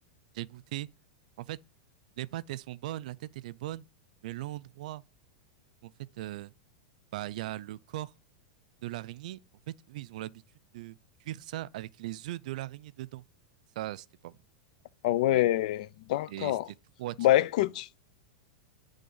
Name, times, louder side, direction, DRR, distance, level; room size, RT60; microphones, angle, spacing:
voice 1, 0.3-0.9 1.4-1.6 2.2-3.8 4.2-5.0 5.8-5.9 6.2-6.5 7.1-8.1 8.8-9.4 9.7-10.4 10.7-11.0 11.2-13.2 13.8-14.4 15.3-15.5 16.3-16.6 17.0-17.2, right 15 dB, 65° right, 0.4 m, -39 dB
voice 2, 15.0-16.7 17.2-17.9, left 14 dB, 60° left, 0.4 m, -26 dB
10.0 x 3.5 x 5.4 m
supercardioid pair, 150°, 4 cm